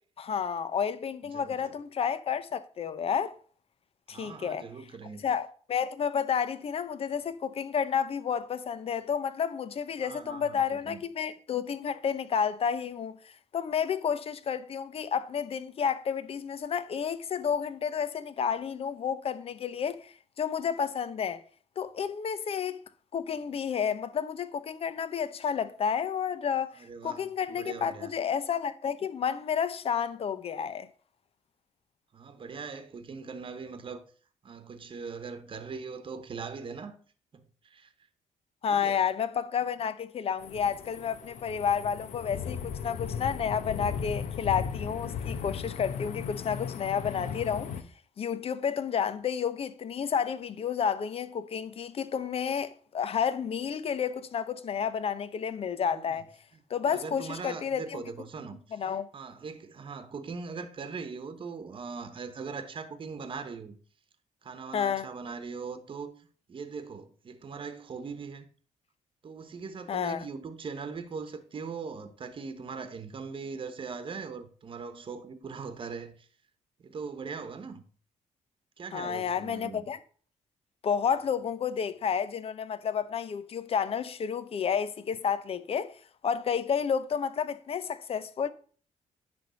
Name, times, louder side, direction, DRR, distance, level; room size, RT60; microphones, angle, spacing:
voice 1, 0.2-3.3 4.1-4.6 5.2-13.2 13.5-21.4 21.8-22.8 23.1-30.9 38.6-47.7 48.2-56.3 56.7-58.0 58.7-59.1 64.7-65.1 69.9-70.2 78.9-80.0 80.8-86.0 86.2-88.5, left 7 dB, 50° left, 0.8 m, -31 dB
voice 2, 1.3-1.8 4.1-5.2 10.0-11.0 26.8-28.1 32.1-34.0 34.4-37.0 37.3-37.9 38.7-39.0 55.9-56.2 56.9-63.8 64.4-68.5 69.2-76.3 76.8-77.8 78.8-79.9, right 5 dB, 45° right, 1.1 m, -41 dB
sound 1, 40.4-47.8, left 7 dB, 75° left, 0.9 m, -36 dB
10.0 x 3.5 x 6.8 m
cardioid pair, 100°, 13 cm